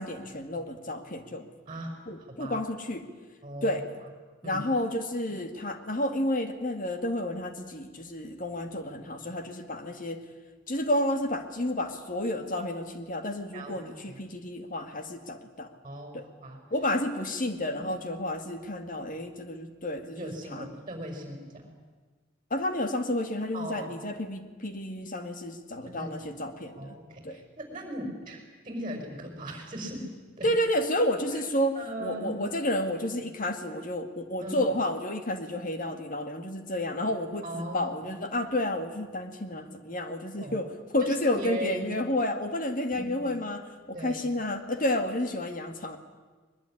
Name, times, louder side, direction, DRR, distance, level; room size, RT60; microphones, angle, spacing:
voice 1, 0.0-1.5 2.1-3.1 3.6-3.8 4.4-10.2 10.7-15.7 16.1-16.2 16.7-20.7 22.5-26.9 27.2-27.4 30.4-46.0, left 1 dB, 45° left, 7 dB, 2.1 m, -31 dB
voice 2, 2.3-2.6 3.4-3.8 4.4-4.6 13.5-13.8 14.1-14.2 15.8-16.6 17.8-17.9 20.2-21.7 23.5-23.9 25.8-26.4 26.8-30.0 30.4-30.5 31.3-31.4 31.7-32.4 34.4-34.7 37.4-38.1 40.4-40.6 41.0-41.9 42.9-43.3 43.9-44.2, right 1 dB, 25° right, 3 dB, 5.4 m, -38 dB
22.0 x 21.0 x 10.0 m, 1.4 s
head